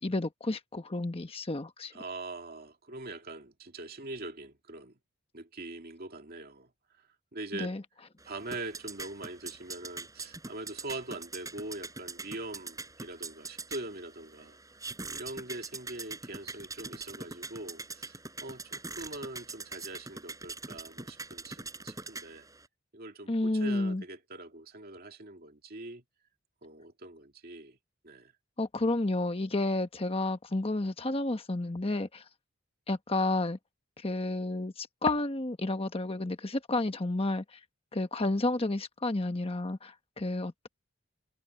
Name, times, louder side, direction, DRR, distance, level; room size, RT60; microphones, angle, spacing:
voice 1, 0.0-1.9 7.5-7.8 23.3-24.0 28.6-32.2 32.9-33.6 34.0-37.4 37.9-40.7, left 2 dB, 30° left, 1.2 m, -31 dB
voice 2, 1.9-5.0 5.3-6.7 7.3-7.8 8.2-14.6 15.1-22.5 22.9-26.0 26.6-27.8 28.0-28.3, right 2 dB, 50° right, 2.4 m, -43 dB
sound 1, 8.2-22.7, right 3 dB, 15° right, 5.2 m, -43 dB
head